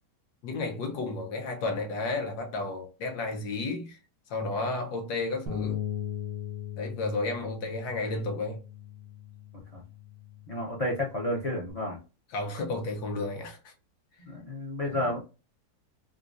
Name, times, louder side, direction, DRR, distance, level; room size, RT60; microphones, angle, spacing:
voice 1, 0.4-4.0 4.3-5.8 6.8-8.6 12.3-13.7 14.9-15.0, left 3 dB, 70° left, 1.3 m, -32 dB
Bass guitar, 5.5-11.7, left 10 dB, 90° right, 1.4 m, -39 dB
voice 2, 10.5-12.0 14.2-15.2, left 1 dB, 50° left, 0.4 m, -31 dB
3.8 x 2.4 x 2.4 m
omnidirectional pair, 1.9 m